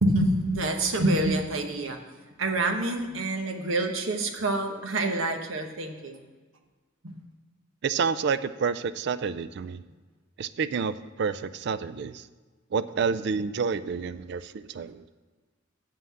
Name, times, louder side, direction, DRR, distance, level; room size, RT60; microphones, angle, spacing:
voice 1, 0.0-2.0 2.4-6.2 7.0-7.2, right 2 dB, 75° right, 4 dB, 1.1 m, -27 dB
voice 2, 7.8-9.8 10.4-12.3 12.7-15.0, right 5 dB, 55° right, 14 dB, 0.3 m, -29 dB
7.7 x 5.6 x 7.3 m, 1.3 s
head